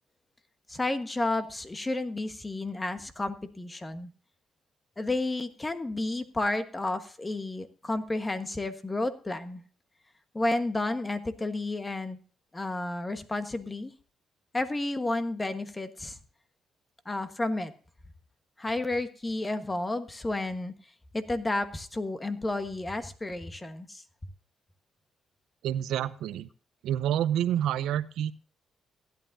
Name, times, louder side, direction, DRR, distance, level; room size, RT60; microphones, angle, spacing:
voice 1, 0.7-4.1 5.0-9.6 10.3-12.2 12.5-13.9 14.5-16.2 17.0-17.7 18.6-20.7 21.1-24.0, left 2 dB, 20° left, 9 dB, 1.3 m, -31 dB
voice 2, 25.6-26.5 26.8-28.3, right 10 dB, 85° right, 12 dB, 0.6 m, -28 dB
15.5 x 11.5 x 2.7 m, 0.40 s
cardioid pair, 90°, 0 cm